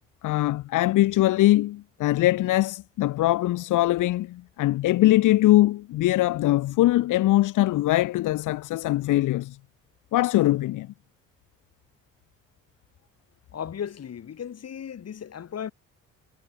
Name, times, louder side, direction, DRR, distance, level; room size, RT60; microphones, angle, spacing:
voice 1, 0.2-9.6 10.1-10.9, left 16 dB, 85° left, 1.7 m, -22 dB
voice 2, 13.5-15.7, left 8 dB, 55° left, 6.4 m, -35 dB
cardioid pair, 90°, 30 cm